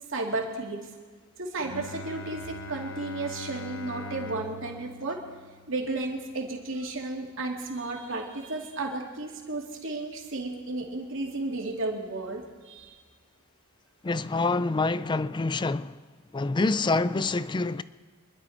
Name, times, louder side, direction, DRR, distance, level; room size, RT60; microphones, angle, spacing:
voice 1, 0.1-0.8 1.4-5.2 5.7-13.0, right 2 dB, 65° right, 2.7 m, -33 dB
Bowed string instrument, 1.6-7.3, left 2 dB, 70° left, 0.9 m, -42 dB
voice 2, 14.0-15.9 16.3-17.8, left 3 dB, 20° left, 0.4 m, -26 dB
26.0 x 12.0 x 4.3 m
head